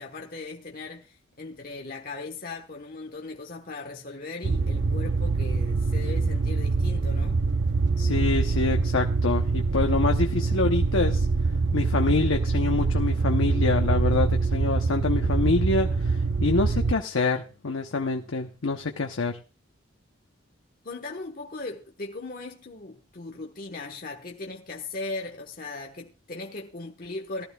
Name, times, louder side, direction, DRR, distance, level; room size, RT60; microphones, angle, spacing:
voice 1, 0.0-7.4 20.8-27.5, left 3 dB, 45° left, 1.2 m, -38 dB
sound 1, 4.4-16.9, right 4 dB, 70° right, 0.6 m, -24 dB
voice 2, 8.0-11.3 11.7-19.4, left 3 dB, 90° left, 0.8 m, -26 dB
18.5 x 12.5 x 2.3 m
head